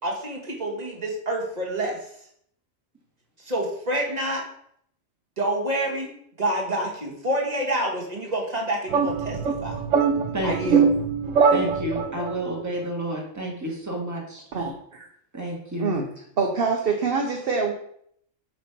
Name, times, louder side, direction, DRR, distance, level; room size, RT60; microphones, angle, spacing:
voice 1, 0.0-2.0 3.4-4.4 5.4-6.1 6.4-9.8 10.4-10.9, right 1 dB, 35° right, -1 dB, 1.6 m, -27 dB
sound 1, 8.9-12.4, right 6 dB, 75° right, 1.0 m, -22 dB
voice 2, 10.3-10.9 11.5-14.4 15.3-15.9, right 1 dB, 15° right, -1 dB, 1.6 m, -30 dB
voice 3, 14.5-15.1 15.8-16.1 16.4-17.7, right 4 dB, 50° right, 2 dB, 0.9 m, -25 dB
7.7 x 3.1 x 5.8 m, 0.69 s
omnidirectional pair, 1.3 m